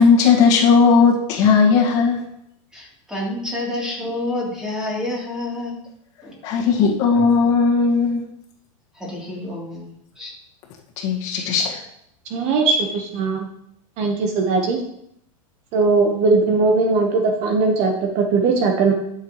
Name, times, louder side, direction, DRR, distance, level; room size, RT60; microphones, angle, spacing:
voice 1, 0.0-2.2 6.4-8.3 11.0-11.8, left 5 dB, 40° left, -2 dB, 1.8 m, -16 dB
voice 2, 2.7-5.8 6.2-6.3 7.1-7.3 8.9-9.9 10.1-10.3, left 1 dB, 5° right, -4 dB, 3.3 m, -28 dB
voice 3, 12.3-13.4 14.0-14.8 15.7-18.9, right 4 dB, 40° right, 3 dB, 1.3 m, -19 dB
12.0 x 6.8 x 3.2 m, 0.74 s
supercardioid pair, 155°, 18 cm